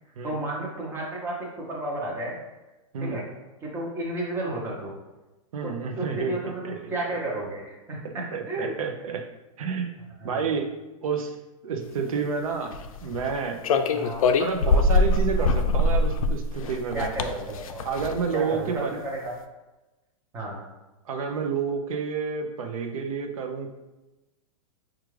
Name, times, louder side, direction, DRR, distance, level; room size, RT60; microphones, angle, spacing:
voice 1, 0.2-1.4 1.7-2.4 3.0-3.2 3.6-4.9 5.6-8.7 10.2-10.4 13.9-14.3 16.9-17.8 18.3-19.3 20.3-20.7, right 2 dB, 15° right, -3 dB, 0.7 m, -32 dB
voice 2, 5.5-6.8 8.0-9.3 9.6-10.0 10.2-10.7 11.0-11.4 11.6-13.7 14.4-17.1 17.8-19.0 21.1-23.7, right 5 dB, 80° right, 4 dB, 0.6 m, -30 dB
sound 1, 12.7-13.3 13.6-18.3, left 3 dB, 85° left, 0.4 m, -23 dB
4.8 x 2.4 x 3.1 m, 1.1 s
supercardioid pair, 155°, 17 cm